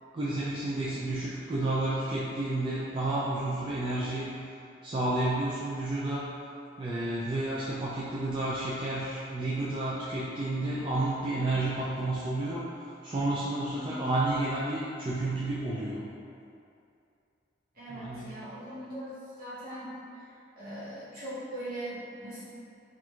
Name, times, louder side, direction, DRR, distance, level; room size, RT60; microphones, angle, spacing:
voice 1, 0.1-4.3 4.8-6.3 6.8-16.0 17.9-18.4, right 2 dB, 25° right, -8 dB, 0.3 m, -31 dB
voice 2, 13.7-14.1 17.7-22.4, equal, 55° right, -11 dB, 1.2 m, -40 dB
4.3 x 2.5 x 2.4 m, 2.6 s
head